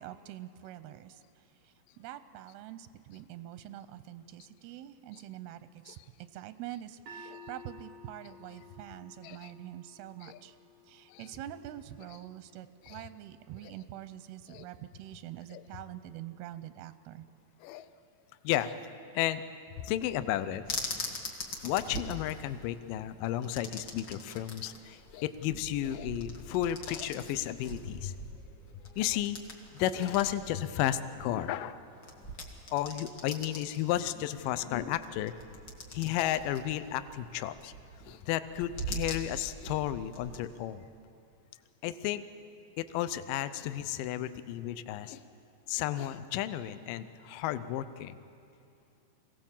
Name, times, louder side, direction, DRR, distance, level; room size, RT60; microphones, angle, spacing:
voice 1, 0.0-10.6 10.9-17.3, right 13 dB, 90° right, 12 dB, 2.6 m, -45 dB
sound 1, 7.1-13.2, left 1 dB, 70° right, 1.6 m, -54 dB
voice 2, 18.4-18.8 19.1-19.4 19.8-20.6 21.6-28.1 29.0-29.4 29.7-31.8 32.7-35.3 35.9-37.7 38.1-40.8 41.8-42.3 42.8-45.3 45.7-48.2, left 12 dB, 75° left, 12 dB, 2.1 m, -33 dB
sound 2, 20.6-40.4, equal, 45° left, 1.6 m, -43 dB
23.5 x 17.0 x 7.3 m, 2.5 s
omnidirectional pair, 4.4 m